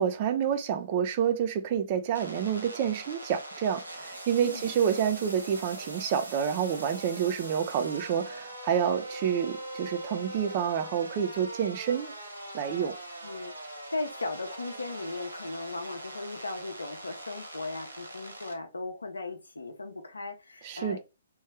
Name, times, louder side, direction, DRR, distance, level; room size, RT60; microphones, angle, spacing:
voice 1, 0.0-12.1 12.5-12.9 20.6-21.0, right 8 dB, 35° right, 0.6 m, -28 dB
sound 1, 2.1-18.5, right 1 dB, 80° right, 1.0 m, -42 dB
voice 2, 13.2-21.0, left 3 dB, 75° left, 0.8 m, -37 dB
3.2 x 3.1 x 3.3 m
figure-of-eight pair, 125°, 0 cm